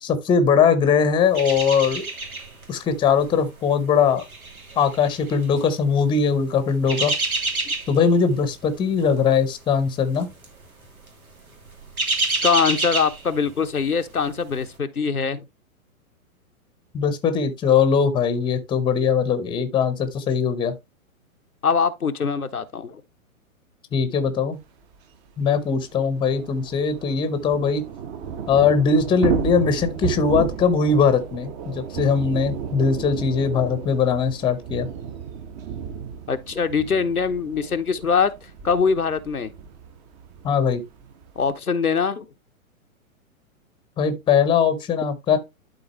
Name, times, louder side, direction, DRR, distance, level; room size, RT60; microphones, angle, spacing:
voice 1, 0.0-2.1 2.7-4.2 4.8-7.1 7.9-10.3 16.9-20.7 23.9-24.6 25.4-27.8 28.5-34.9 40.4-40.8 44.0-45.4, left 6 dB, 10° left, 0.9 m, -20 dB
sound 1, 1.3-2.7 3.0-3.2 3.9-5.6 6.6-8.1 8.5-8.8 9.0-9.2 10.1-10.5 10.8-11.0 11.5-13.8 14.1-14.2, right 3 dB, 75° right, 2.5 m, -27 dB
voice 2, 12.4-15.4 21.6-23.0 36.3-38.3 38.6-39.5 41.4-42.3, left 5 dB, 90° left, 0.9 m, -22 dB
Thunder / Rain, 24.9-25.0 25.3-25.4 25.7-41.5, right 7 dB, 30° right, 1.1 m, -33 dB
11.5 x 4.0 x 3.1 m
figure-of-eight pair, 115°, 43 cm